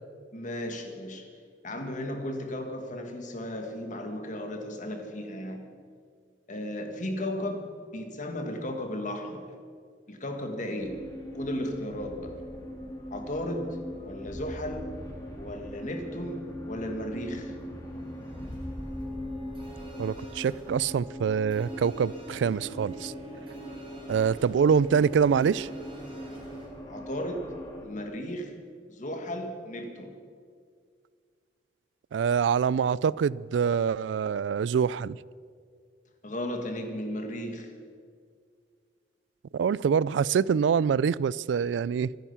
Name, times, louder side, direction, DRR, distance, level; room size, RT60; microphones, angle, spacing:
voice 1, 0.3-1.3 1.6-5.6 6.5-9.5 10.1-11.0 11.3-12.3 13.1-14.9 15.4-17.5 26.0-26.3 26.9-27.4 27.8-28.5 28.9-30.1 36.2-37.7, left 1 dB, 45° left, 2.0 m, -35 dB
sound 1, 10.8-27.9, equal, 20° left, 2.8 m, -41 dB
sound 2, 18.0-26.7, right 1 dB, 30° right, 3.7 m, -47 dB
voice 2, 20.0-23.1 24.1-25.7 32.1-35.2 39.5-42.1, right 7 dB, 90° right, 0.3 m, -25 dB
25.5 x 9.1 x 5.7 m
head